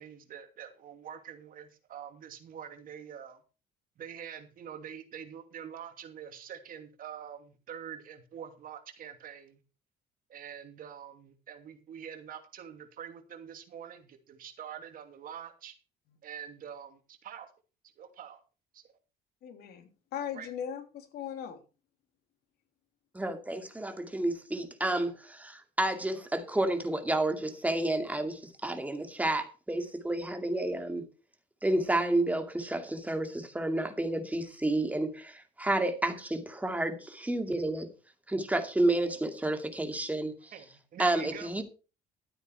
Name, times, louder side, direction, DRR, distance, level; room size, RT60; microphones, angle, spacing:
voice 1, 0.0-3.4 4.0-9.6 10.3-15.7 16.2-17.5 18.0-18.4 18.7-18.8 20.3-20.5 40.5-41.5, right 8 dB, 55° right, 2.7 m, -45 dB
voice 2, 19.4-21.6, left 8 dB, 70° left, 3.2 m, -39 dB
voice 3, 23.1-31.0 31.6-37.9 38.3-40.3 41.0-41.6, right 1 dB, 10° right, 2.4 m, -30 dB
13.0 x 9.0 x 4.8 m
cardioid pair, 110°, 17 cm